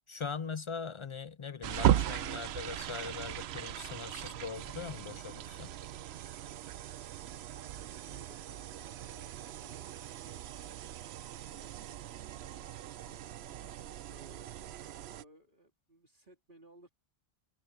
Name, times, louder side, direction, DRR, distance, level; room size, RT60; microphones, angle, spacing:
voice 1, 0.1-5.7, left 5 dB, 55° left, 0.3 m, -41 dB
sound 1, 1.6-15.2, right 11 dB, 80° right, 0.9 m, -37 dB
voice 2, 7.3-10.8 14.1-16.9, right 2 dB, 55° right, 3.1 m, -60 dB
omnidirectional pair, 1.0 m